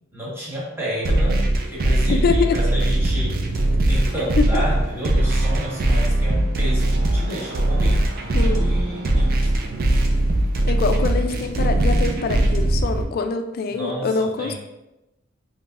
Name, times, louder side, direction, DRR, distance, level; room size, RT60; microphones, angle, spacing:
voice 1, 0.1-9.5 13.7-14.5, equal, 10° right, -8 dB, 1.2 m, -31 dB
sound 1, 1.0-13.0, right 1 dB, 50° right, 0.4 m, -20 dB
voice 2, 2.1-2.6 4.4-4.6 8.3-8.7 10.7-14.5, left 4 dB, 50° left, 7 dB, 0.3 m, -24 dB
3.9 x 2.7 x 2.4 m, 0.94 s
head